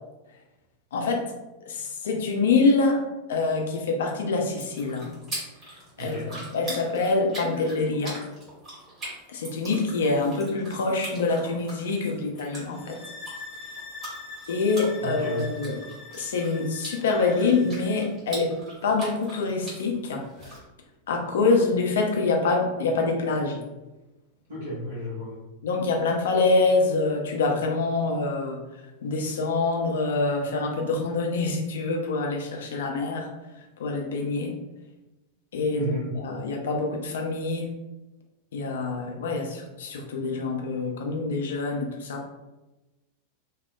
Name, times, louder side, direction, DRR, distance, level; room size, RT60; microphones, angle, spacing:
voice 1, 0.9-1.3 1.6-5.2 6.0-8.2 9.3-13.0 14.5-15.8 16.1-20.5 21.1-23.6 25.6-28.6 29.0-33.3 33.8-34.5 35.5-37.7 38.5-42.2, left 3 dB, 60° left, 2 dB, 0.4 m, -25 dB
sound 1, 4.4-20.6, right 1 dB, 25° right, 1.2 m, -42 dB
voice 2, 6.0-6.4 15.0-15.5 24.5-25.4 35.7-36.2, right 1 dB, 70° right, -7 dB, 0.9 m, -33 dB
sound 2, 12.7-18.1, left 4 dB, 35° left, 0.8 m, -43 dB
2.6 x 2.0 x 2.3 m, 1.1 s
figure-of-eight pair, 90°, 0 cm